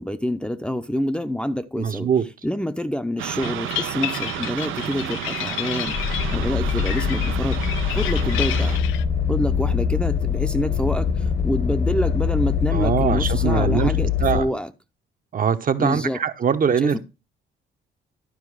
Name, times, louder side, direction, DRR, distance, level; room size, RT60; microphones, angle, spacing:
voice 1, 0.0-2.1 2.4-6.0 6.3-7.6 7.9-8.8 9.3-14.7 15.8-16.2 16.8-17.0, equal, 5° left, 0.6 m, -27 dB
voice 2, 1.8-2.2 12.7-13.9 14.2-14.5 15.3-17.0, right 7 dB, 45° right, 0.9 m, -22 dB
sound 1, 3.2-8.8, right 12 dB, 85° right, 0.7 m, -31 dB
sound 2, 3.4-9.0, left 15 dB, 85° left, 0.4 m, -31 dB
sound 3, 5.9-14.4, left 7 dB, 55° left, 1.3 m, -23 dB
12.0 x 4.8 x 4.8 m
cardioid pair, 90°, 20 cm